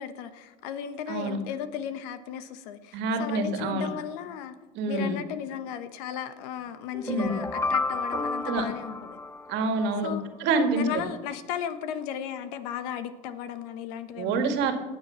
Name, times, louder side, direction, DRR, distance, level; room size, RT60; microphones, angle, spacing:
voice 1, 0.0-4.5 4.9-9.2 10.0-10.3 10.7-14.6, left 9 dB, 75° left, 11 dB, 1.2 m, -35 dB
voice 2, 2.9-3.9 4.8-5.2 7.0-7.3 8.5-8.6 9.5-10.1 10.4-11.0 14.2-14.7, right 3 dB, 60° right, 6 dB, 2.0 m, -26 dB
sound 1, 6.9-10.0, left 3 dB, 15° left, 0.5 m, -31 dB
18.5 x 7.1 x 5.7 m, 1.2 s
supercardioid pair, 115°, 20 cm